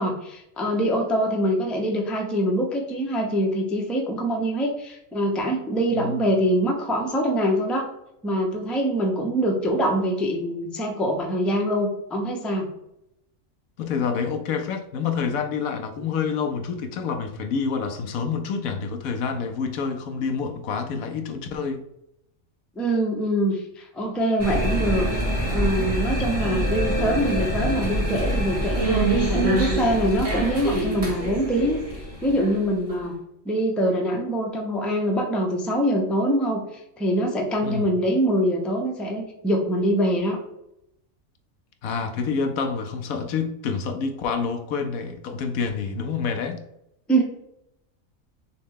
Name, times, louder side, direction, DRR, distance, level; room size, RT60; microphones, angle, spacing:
voice 1, 0.0-7.9 8.2-12.7 22.8-25.1 25.5-31.8 32.2-33.1 33.4-36.6 37.0-40.4 47.1-47.2, equal, ahead, 0.5 m, -24 dB
voice 2, 13.8-21.8 37.6-37.9 41.8-46.6, left 5 dB, 85° left, 1.1 m, -27 dB
sound 1, 24.4-33.0, right 1 dB, 30° right, 1.0 m, -25 dB
6.3 x 2.2 x 3.6 m
omnidirectional pair, 1.4 m